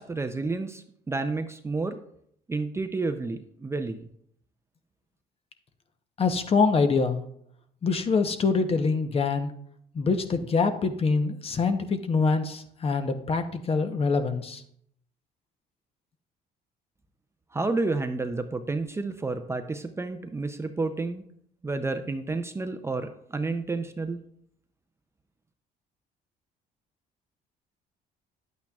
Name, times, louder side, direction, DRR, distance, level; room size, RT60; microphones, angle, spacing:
voice 1, 0.0-2.0 2.5-4.1 17.5-21.2 21.6-24.2, right 3 dB, 15° right, 7 dB, 0.5 m, -30 dB
voice 2, 6.2-7.2 7.8-9.5 9.9-14.6, left 4 dB, 35° left, 8 dB, 0.8 m, -25 dB
10.0 x 8.4 x 2.4 m, 0.69 s
cardioid pair, 110°, 17 cm